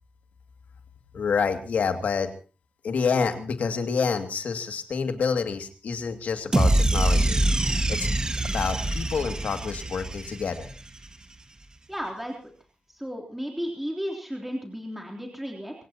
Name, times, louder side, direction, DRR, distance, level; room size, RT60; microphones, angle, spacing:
voice 1, 1.1-2.3 2.8-8.1 8.4-10.7, left 5 dB, 80° left, 6 dB, 2.4 m, -28 dB
sound 1, 6.5-10.9, right 1 dB, 30° right, 1.7 m, -24 dB
voice 2, 11.9-12.4 12.9-15.7, equal, 5° right, 0 dB, 3.5 m, -33 dB
25.5 x 17.0 x 2.9 m, 0.35 s
cardioid pair, 80°, 3 cm